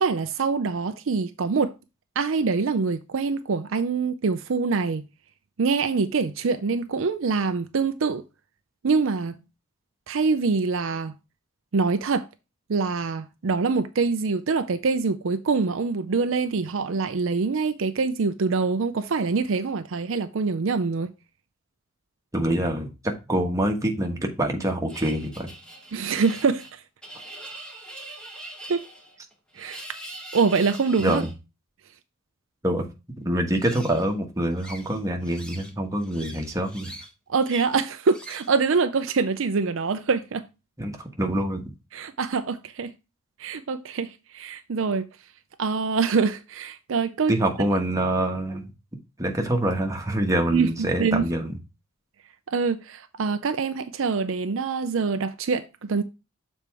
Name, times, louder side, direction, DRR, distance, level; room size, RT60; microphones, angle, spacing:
voice 1, 0.0-1.7 2.2-5.1 5.6-8.2 8.8-9.4 10.1-11.2 11.7-12.3 12.7-21.1 25.9-26.8 28.7-28.9 29.5-29.8 30.3-31.2 37.3-40.4 41.9-42.9 43.4-45.1 45.6-47.3 50.5-51.2 52.5-56.0, right 4 dB, 60° right, 0.5 m, -25 dB
voice 2, 22.3-25.5 31.0-31.3 32.6-32.9 33.2-37.0 40.8-41.6 47.3-48.7 49.2-51.5, right 1 dB, 15° right, 1.3 m, -25 dB
sound 1, 24.9-31.3 33.5-34.1 34.6-35.7 36.0-37.1 37.4-37.7 38.1-38.5, right 1 dB, 5° left, 1.3 m, -42 dB
6.8 x 4.3 x 4.7 m
head